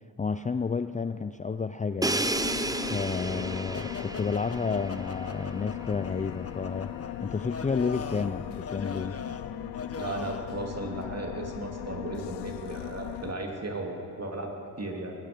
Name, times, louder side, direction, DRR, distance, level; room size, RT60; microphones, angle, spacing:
voice 1, 0.2-2.3 2.9-6.9 7.2-9.2, left 5 dB, 20° left, 11 dB, 0.4 m, -31 dB
Crash cymbal, 2.0-5.8, right 2 dB, 10° right, 0.7 m, -32 dB
sound 1, 2.2-13.3, left 13 dB, 85° left, 0.6 m, -38 dB
sound 2, 3.7-10.5, left 5 dB, 35° left, 1.0 m, -41 dB
voice 2, 10.0-14.5 14.8-15.1, right 2 dB, 40° right, 1 dB, 2.9 m, -36 dB
20.5 x 10.5 x 5.2 m, 2.7 s
supercardioid pair, 45°, 39 cm